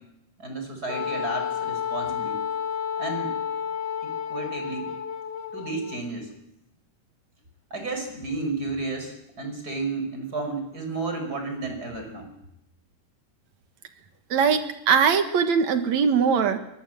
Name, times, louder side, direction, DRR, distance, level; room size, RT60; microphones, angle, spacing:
voice 1, 0.4-2.4 3.0-3.4 4.0-4.9 5.5-6.3 7.7-12.3, right 3 dB, 25° right, 5 dB, 5.4 m, -32 dB
Wind instrument woodwind instrument, 0.9-6.0, left 8 dB, 60° left, 2.6 m, -31 dB
voice 2, 14.3-16.6, right 6 dB, 60° right, 8 dB, 2.7 m, -21 dB
23.5 x 20.0 x 7.8 m, 0.82 s
omnidirectional pair, 3.7 m